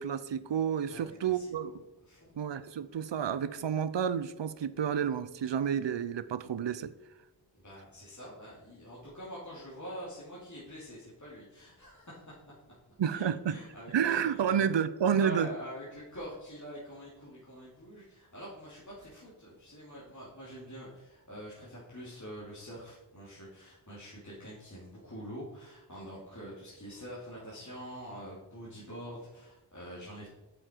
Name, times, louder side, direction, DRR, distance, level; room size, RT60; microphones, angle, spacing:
voice 1, 0.0-1.7 2.4-6.9 13.0-13.6 13.9-15.5, right 8 dB, 70° right, 14 dB, 0.6 m, -30 dB
voice 2, 0.9-1.7 2.0-2.3 7.5-12.6 13.1-14.7 15.1-30.3, equal, 40° left, -8 dB, 2.9 m, -45 dB
8.8 x 6.8 x 4.5 m, 0.96 s
wide cardioid pair, 50°, 46 cm